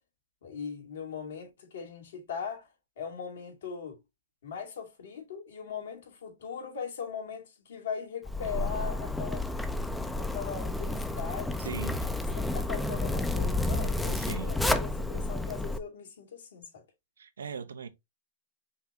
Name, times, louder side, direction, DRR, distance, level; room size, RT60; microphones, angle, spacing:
voice 1, 0.4-2.7 3.0-4.0 4.4-9.5 10.2-11.8 12.3-16.8, left 6 dB, 75° left, 2.6 m, -39 dB
Zipper (clothing), 8.2-15.8, left 2 dB, 5° left, 0.5 m, -31 dB
voice 2, 11.6-12.0 14.1-14.5 17.2-17.9, right 6 dB, 85° right, 0.7 m, -39 dB
5.6 x 3.3 x 2.8 m
hypercardioid pair, 130°, 0 cm